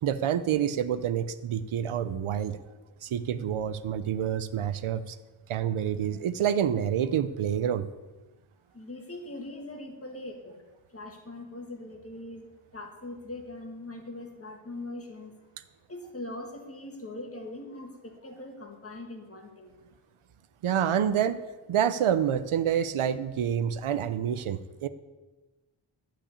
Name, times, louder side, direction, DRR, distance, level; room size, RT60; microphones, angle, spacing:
voice 1, 0.0-2.6 3.0-5.2 5.5-7.9 20.6-21.4 21.7-24.9, right 9 dB, 90° right, 12 dB, 0.7 m, -27 dB
voice 2, 8.7-10.6 10.9-12.5 12.7-15.3 15.9-19.7, left 2 dB, 30° left, 2 dB, 1.8 m, -41 dB
12.0 x 5.9 x 8.4 m, 1.2 s
wide cardioid pair, 135°, 48 cm